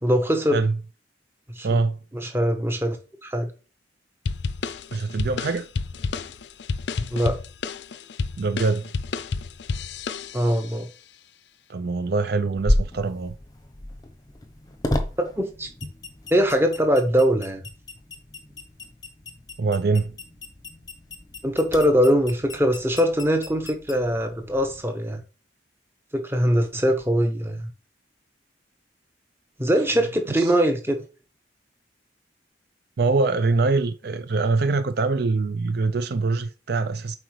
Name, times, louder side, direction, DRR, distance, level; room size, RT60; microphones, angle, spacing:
voice 1, 0.0-0.6 1.6-1.8 2.1-3.0 3.2-3.5 7.1-7.4 10.3-10.9 15.2-15.7 16.3-17.6 21.4-25.2 26.1-27.7 29.6-31.0, equal, 15° right, 1.1 m, -22 dB
voice 2, 1.6-2.0 4.9-5.7 8.4-8.9 11.7-13.3 19.6-20.1 33.0-37.2, right 3 dB, 60° right, 0.5 m, -23 dB
sound 1, 4.3-10.7, left 4 dB, 70° left, 0.5 m, -30 dB
sound 2, 12.6-24.8, left 1 dB, 20° left, 0.9 m, -33 dB
7.8 x 4.7 x 3.2 m
head